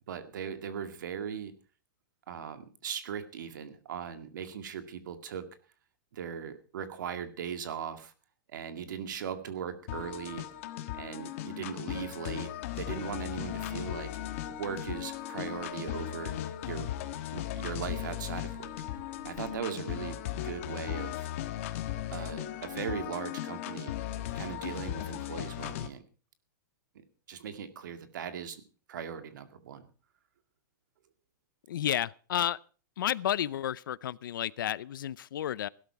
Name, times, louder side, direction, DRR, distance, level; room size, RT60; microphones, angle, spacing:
voice 1, 0.1-1.5 2.3-5.5 6.1-8.1 8.5-10.5 11.0-12.5 12.8-14.1 14.5-16.4 16.6-16.9 17.3-18.7 19.2-20.2 20.4-21.3 22.1-24.0 24.3-26.0 27.3-28.6 28.9-29.8, right 8 dB, 65° right, 2.1 m, -39 dB
sound 1, 9.9-25.9, left 12 dB, 40° left, 1.4 m, -37 dB
sound 2, 13.9-19.6, right 2 dB, 30° right, 5.1 m, -59 dB
voice 2, 31.7-32.6 33.0-35.7, left 11 dB, 75° left, 0.6 m, -31 dB
17.0 x 12.5 x 4.6 m
supercardioid pair, 175°, 11 cm